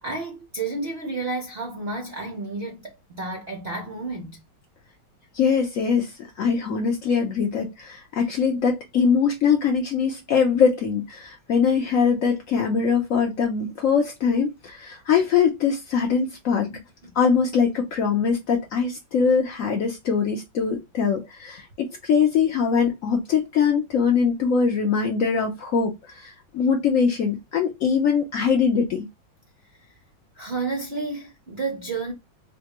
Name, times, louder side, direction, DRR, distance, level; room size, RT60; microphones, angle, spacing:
voice 1, 0.0-4.4 16.6-16.8 30.4-32.1, right 3 dB, 75° right, 0.5 m, -31 dB
voice 2, 5.3-6.1 6.4-16.7 17.1-21.6 22.0-29.1, left 6 dB, 80° left, 0.7 m, -22 dB
4.1 x 2.2 x 2.9 m
omnidirectional pair, 2.3 m